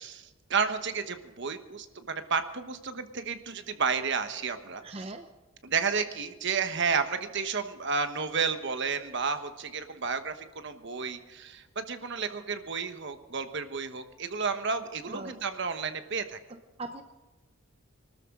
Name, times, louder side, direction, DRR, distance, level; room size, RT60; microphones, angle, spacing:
voice 1, 0.0-5.1 5.6-16.4, right 5 dB, 55° right, 9 dB, 1.2 m, -32 dB
voice 2, 4.8-5.3 15.1-15.4 16.8-17.0, right 2 dB, 30° right, 7 dB, 0.7 m, -39 dB
24.5 x 13.0 x 3.8 m, 1.2 s
head